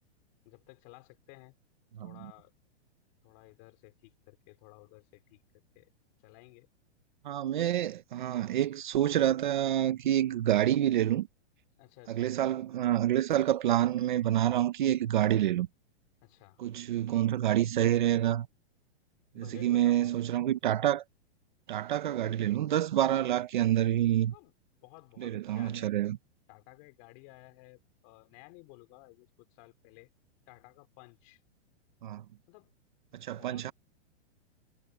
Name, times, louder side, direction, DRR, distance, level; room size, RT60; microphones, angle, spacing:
voice 1, 0.4-1.5 2.0-2.5 3.2-5.4 5.7-5.9 6.2-6.7 11.8-12.3 16.2-16.6 19.3-20.1 24.3-24.5 24.8-25.9 26.5-30.1 30.5-31.4 32.5-32.7 33.3-33.7, left 25 dB, 25° left, 4.0 m, -55 dB
voice 2, 7.2-11.3 12.1-15.7 16.6-18.5 19.4-21.0 21.7-24.3 25.2-26.2 32.0-32.2 33.1-33.7, right 12 dB, 45° right, 0.9 m, -27 dB
hypercardioid pair, 180°, 34 cm